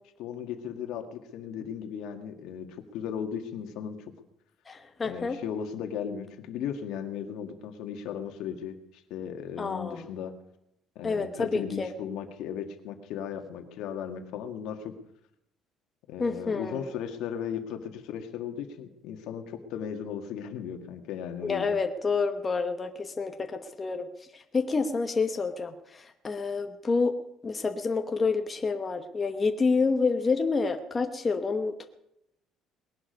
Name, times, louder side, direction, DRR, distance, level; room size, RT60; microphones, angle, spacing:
voice 1, 0.2-4.0 5.0-10.3 11.0-14.9 16.1-21.8, left 8 dB, 75° left, 6 dB, 1.8 m, -36 dB
voice 2, 4.7-5.4 9.6-10.1 11.0-11.9 16.2-17.0 21.4-24.1 24.3-27.1 27.4-31.9, left 4 dB, 20° left, 6 dB, 1.1 m, -28 dB
20.0 x 11.5 x 5.3 m, 0.82 s
cardioid pair, 140°, 0 cm